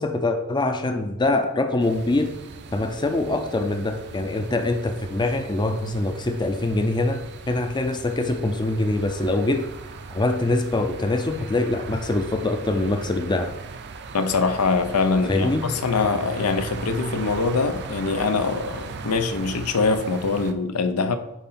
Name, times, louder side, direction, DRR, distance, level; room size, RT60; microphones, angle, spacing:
voice 1, 0.0-2.3 2.7-7.2 7.5-9.7 10.1-13.5 15.3-15.6, left 2 dB, 20° left, 0.5 m, -24 dB
sound 1, 1.8-20.5, right 4 dB, 50° right, 0.5 m, -38 dB
voice 2, 14.1-21.2, left 4 dB, 90° left, 0.7 m, -23 dB
9.3 x 3.9 x 4.2 m
head